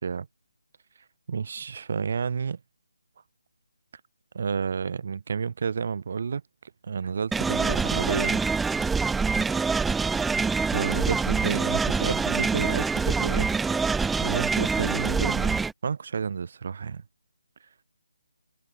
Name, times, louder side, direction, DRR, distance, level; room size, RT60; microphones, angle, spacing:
voice 1, 1.3-2.6 4.3-6.4 6.8-8.4 10.7-13.8 14.2-17.0, right 6 dB, 45° right, 2.6 m, -31 dB
sound 1, 7.3-15.7, right 4 dB, 5° right, 0.7 m, -25 dB
hypercardioid pair, 170°, 0 cm